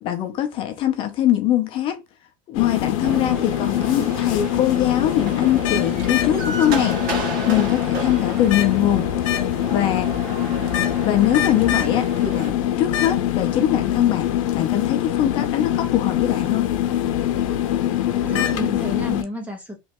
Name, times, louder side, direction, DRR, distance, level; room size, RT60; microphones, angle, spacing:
voice 1, 0.0-2.0 2.5-7.0 7.5-9.1 9.6-10.1 11.0-16.7, left 11 dB, 30° left, 0.6 m, -22 dB
sound 1, 2.5-19.2, left 11 dB, 80° left, 0.7 m, -23 dB
sound 2, 3.0-12.5, right 2 dB, 50° right, 1.5 m, -33 dB
voice 2, 18.2-19.8, equal, 10° right, 0.6 m, -31 dB
3.4 x 3.1 x 3.0 m
cardioid pair, 175°, 16 cm